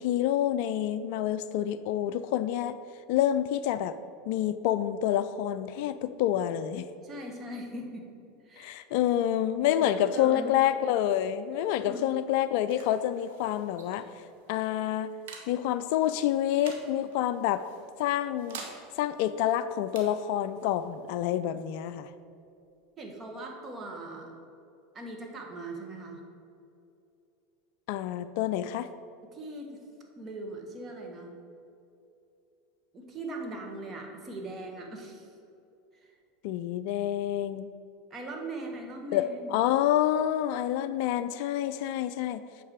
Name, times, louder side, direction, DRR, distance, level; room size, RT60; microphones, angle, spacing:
voice 1, 0.0-2.8 3.1-3.9 4.3-6.9 8.6-14.1 14.5-15.1 15.5-17.6 18.0-18.6 19.0-22.1 27.9-28.9 36.4-37.7 39.1-42.4, left 11 dB, 60° left, 13 dB, 0.3 m, -28 dB
voice 2, 7.0-8.1 8.4-8.8 9.6-10.6 11.8-12.1 23.0-24.3 24.9-26.2 29.3-29.8 30.2-31.3 32.9-35.4 36.0-36.1 38.1-39.6, right 1 dB, 30° right, 2 dB, 1.5 m, -40 dB
sound 1, 11.9-23.3, right 5 dB, 65° right, 1.3 m, -51 dB
8.5 x 5.4 x 4.9 m, 2.7 s
hypercardioid pair, 80°, 0 cm